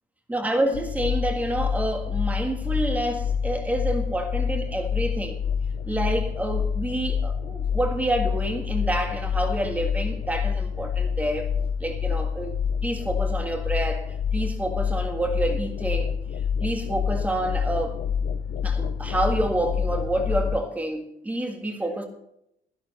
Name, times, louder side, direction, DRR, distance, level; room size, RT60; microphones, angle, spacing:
voice 1, 0.3-5.4 5.8-11.5 11.8-16.1 16.6-18.0 18.6-22.1, right 1 dB, 10° right, 1.7 m, -28 dB
sound 1, 0.7-20.6, left 7 dB, 80° left, 0.8 m, -27 dB
12.5 x 12.0 x 4.2 m
cardioid pair, 175°, 16 cm